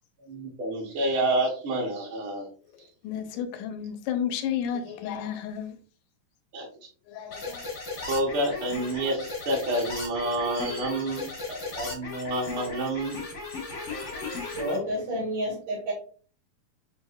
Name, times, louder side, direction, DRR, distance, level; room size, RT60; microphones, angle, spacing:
voice 1, 0.3-2.5 6.5-6.7 8.1-13.2, right 1 dB, 65° right, 1.3 m, -28 dB
voice 2, 3.0-5.8 7.1-7.6, left 8 dB, 90° left, 2.2 m, -32 dB
sound 1, 7.3-14.8, left 3 dB, 70° left, 0.6 m, -36 dB
voice 3, 14.5-15.9, equal, 80° right, 3.5 m, -29 dB
7.7 x 2.6 x 2.4 m
omnidirectional pair, 3.5 m